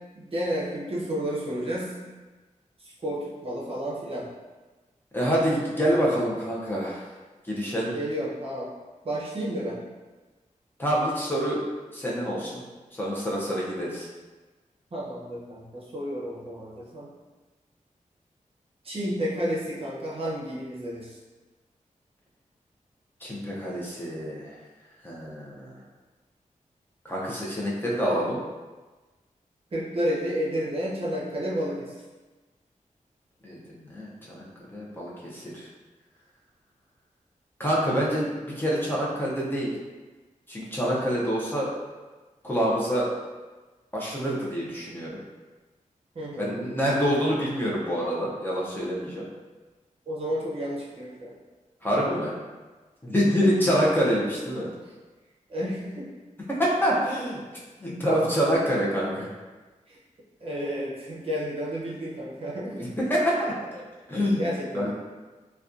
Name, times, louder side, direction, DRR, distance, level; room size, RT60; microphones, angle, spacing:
voice 1, 0.1-2.0 2.8-4.3 7.9-8.7 9.0-9.8 14.9-17.1 18.8-21.2 29.7-32.0 46.1-46.6 50.1-51.4 53.2-53.6 54.9-55.0 55.5-56.1 59.9-60.0 60.4-62.9 64.4-64.9, equal, 45° right, -6 dB, 0.6 m, -31 dB
voice 2, 5.1-7.0 7.5-7.9 10.8-11.6 11.9-12.6 12.9-14.1 23.2-24.5 25.0-25.8 27.0-28.4 33.4-34.4 34.7-35.7 37.6-39.7 40.5-41.7 42.4-43.1 43.9-45.2 46.4-49.3 51.8-52.3 53.0-54.7 56.5-57.4 57.8-59.3 62.8-63.8 64.1-64.4 64.7-64.9, equal, 15° left, -5 dB, 0.5 m, -26 dB
2.5 x 2.2 x 2.4 m, 1.3 s
wide cardioid pair, 95°, 14 cm